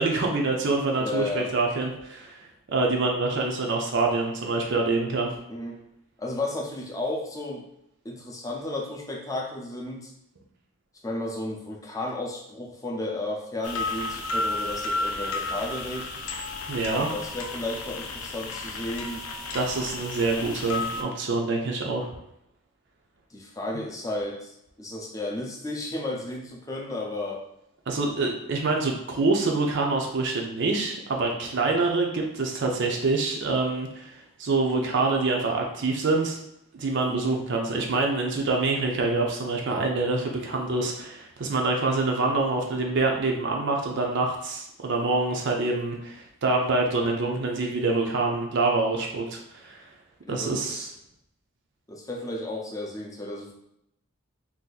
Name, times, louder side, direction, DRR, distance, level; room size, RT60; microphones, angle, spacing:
voice 1, 0.0-2.4 2.7-5.3 16.7-17.1 19.5-22.1 27.9-36.4 36.7-49.9 50.3-50.9, right 3 dB, 55° right, 1 dB, 0.5 m, -26 dB
voice 2, 1.0-1.5 5.5-5.8 6.2-7.7 8.0-10.1 11.0-16.1 16.9-19.2 23.3-27.4 37.1-37.4 50.3-50.9 51.9-53.5, left 2 dB, 15° left, -1 dB, 0.5 m, -33 dB
sound 1, 13.6-21.0, left 3 dB, 85° left, 0.5 m, -32 dB
2.7 x 2.5 x 3.9 m, 0.79 s
head